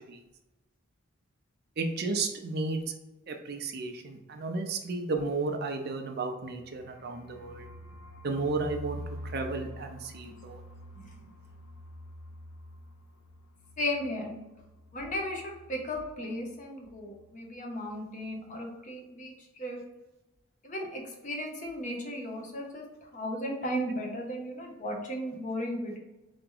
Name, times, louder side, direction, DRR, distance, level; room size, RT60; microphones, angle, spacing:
voice 1, 1.8-2.8 3.3-7.7 8.2-9.0 9.3-10.6, right 3 dB, 45° right, 4 dB, 0.5 m, -33 dB
sound 1, 6.6-16.2 16.4-16.6 16.8-17.3, left 1 dB, 75° left, 0.5 m, -47 dB
voice 2, 13.8-14.3 14.9-19.3 19.6-19.8 20.6-22.9 23.1-26.0, equal, 35° left, 0 dB, 0.8 m, -35 dB
4.2 x 2.9 x 3.7 m, 1.0 s
head